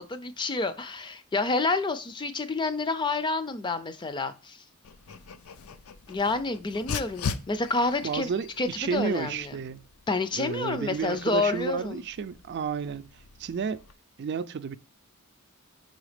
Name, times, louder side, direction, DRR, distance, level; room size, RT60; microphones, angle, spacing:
voice 1, 0.0-4.6 6.1-8.3 8.6-9.6 10.1-12.0, left 3 dB, 20° left, 0.4 m, -29 dB
Dog, 4.8-13.9, left 5 dB, 80° left, 0.5 m, -41 dB
voice 2, 8.0-9.8 10.3-13.1 13.4-13.8 14.2-14.8, right 6 dB, 50° right, 0.4 m, -31 dB
5.5 x 4.0 x 4.9 m
head